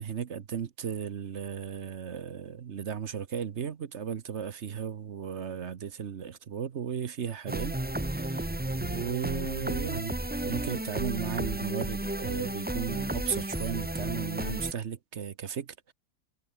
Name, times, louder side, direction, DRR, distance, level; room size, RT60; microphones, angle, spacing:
voice 1, 0.0-8.5 8.8-15.9, right 7 dB, 50° right, 1.2 m, -35 dB
sound 1, 7.5-14.7, right 1 dB, 10° right, 0.6 m, -33 dB
omnidirectional pair, 1.7 m